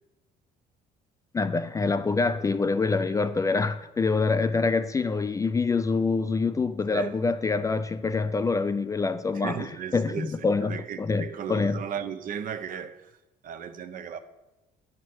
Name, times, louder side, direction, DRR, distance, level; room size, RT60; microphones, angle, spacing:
voice 1, 1.3-11.8, left 4 dB, 20° left, 0.3 m, -26 dB
voice 2, 9.3-13.1 13.4-14.2, right 8 dB, 55° right, 0.7 m, -36 dB
9.3 x 4.4 x 6.1 m
cardioid pair, 110°, 17 cm